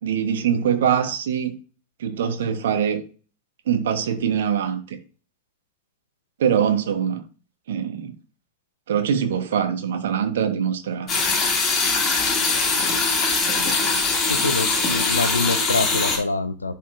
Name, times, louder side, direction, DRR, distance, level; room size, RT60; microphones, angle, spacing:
voice 1, 0.0-1.6 2.0-3.0 3.7-5.0 6.4-7.2 7.7-8.2 8.9-11.1, right 8 dB, 60° right, 1.0 m, -23 dB
sound 1, 11.1-16.2, left 4 dB, 25° left, 2.3 m, -22 dB
voice 2, 14.2-16.7, left 3 dB, 80° left, 0.7 m, -25 dB
11.0 x 4.3 x 2.5 m
figure-of-eight pair, 90°, 0 cm